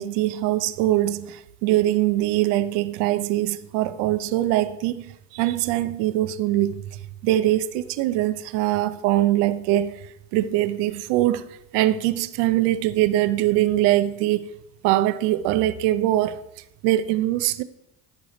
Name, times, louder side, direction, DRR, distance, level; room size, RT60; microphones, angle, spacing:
voice 1, 0.0-14.4 14.8-16.4 16.8-17.6, right 14 dB, 75° right, 0.7 m, -22 dB
12.0 x 4.9 x 5.1 m
hypercardioid pair, 70°, 42 cm